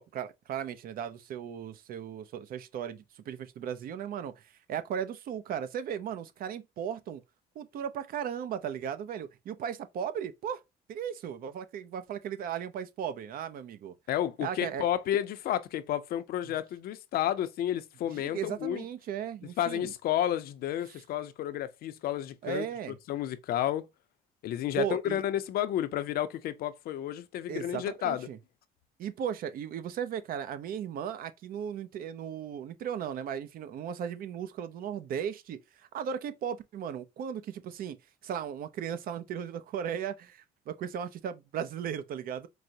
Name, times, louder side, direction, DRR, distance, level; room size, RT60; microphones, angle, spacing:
voice 1, 0.0-7.2 7.6-10.6 10.9-13.9 14.4-14.9 16.5-16.6 18.1-19.9 20.9-21.0 22.4-22.9 24.8-25.2 27.5-28.4 29.0-38.0 38.2-42.5, right 8 dB, 60° right, 0.5 m, -36 dB
voice 2, 14.1-18.8 19.6-22.7 23.1-23.8 24.4-28.3, left 11 dB, 65° left, 0.5 m, -31 dB
4.7 x 2.0 x 2.7 m
cardioid pair, 110°, 17 cm